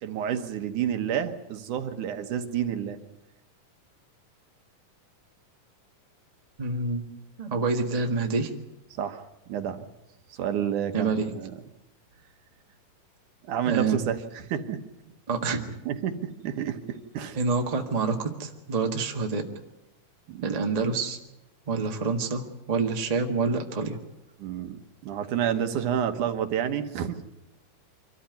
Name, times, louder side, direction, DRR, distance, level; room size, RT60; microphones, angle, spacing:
voice 1, 0.0-3.0 8.9-9.8 10.3-11.5 13.4-14.8 15.9-16.2 16.4-17.4 20.3-20.6 24.4-27.3, right 9 dB, 75° right, 7 dB, 2.7 m, -30 dB
voice 2, 6.6-7.1 7.4-8.5 10.9-11.3 13.6-14.0 15.3-15.7 17.3-19.4 20.4-21.2 21.7-24.0, right 4 dB, 25° right, 3 dB, 0.8 m, -27 dB
25.5 x 13.5 x 9.4 m, 0.94 s
omnidirectional pair, 3.8 m